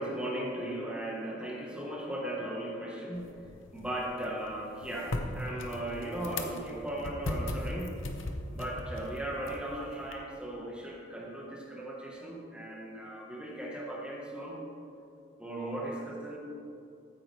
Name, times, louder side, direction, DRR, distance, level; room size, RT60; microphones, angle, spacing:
voice 1, 0.0-3.3 3.7-8.0 8.5-14.6 15.4-16.4, right 1 dB, 5° right, -3 dB, 1.2 m, -37 dB
sound 1, 3.1-10.1, left 1 dB, 80° left, 0.9 m, -39 dB
14.5 x 8.7 x 3.3 m, 2.6 s
head